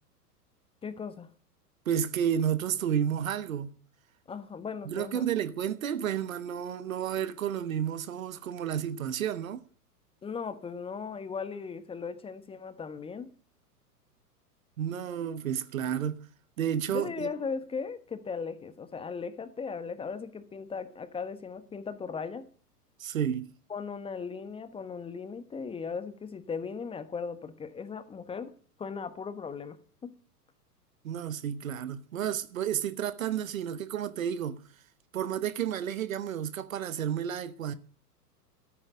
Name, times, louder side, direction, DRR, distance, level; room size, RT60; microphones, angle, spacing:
voice 1, 0.8-1.3 4.3-5.3 10.2-13.3 16.9-22.4 23.7-28.5 28.8-29.8 30.0-30.1, left 5 dB, 10° left, 1.1 m, -37 dB
voice 2, 1.8-3.7 4.8-9.6 14.8-16.2 16.6-17.3 23.0-23.5 31.0-34.6 35.1-37.7, right 9 dB, 55° right, 1.3 m, -31 dB
13.5 x 9.1 x 9.0 m
figure-of-eight pair, 105°, 48 cm